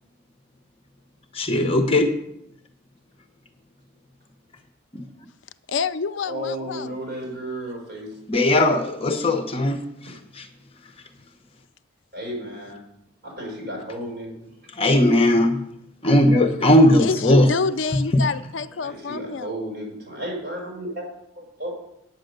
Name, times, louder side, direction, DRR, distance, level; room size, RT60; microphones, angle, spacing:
voice 1, 1.3-2.1 4.9-5.0 8.3-9.8 10.4-10.5 14.7-15.6 16.0-17.5 17.9-18.2, left 1 dB, 30° left, 6 dB, 0.8 m, -18 dB
voice 2, 5.7-7.0 17.0-19.5, left 4 dB, 65° left, 13 dB, 0.4 m, -27 dB
voice 3, 6.3-8.1 12.1-12.8 13.2-14.4 18.8-21.0 21.3-21.7, right 1 dB, 50° right, -2 dB, 5.5 m, -33 dB
9.1 x 8.7 x 6.6 m, 0.80 s
head